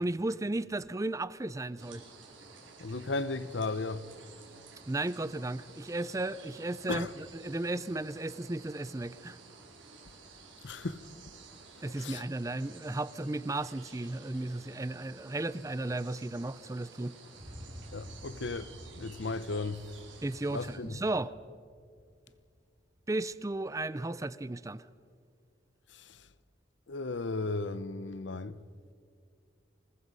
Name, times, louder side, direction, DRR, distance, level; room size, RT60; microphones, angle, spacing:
voice 1, 0.0-2.0 4.9-9.4 11.8-17.2 20.2-21.3 23.1-24.8, right 2 dB, 15° right, 0.5 m, -34 dB
sound 1, 1.8-20.8, right 4 dB, 85° right, 4.2 m, -53 dB
voice 2, 2.8-4.1 6.9-7.1 10.6-11.1 12.0-12.3 17.9-19.8 20.5-21.0 26.9-28.6, left 3 dB, 70° left, 0.8 m, -35 dB
sound 2, 17.3-23.5, equal, 50° right, 6.1 m, -51 dB
25.5 x 19.5 x 5.5 m
head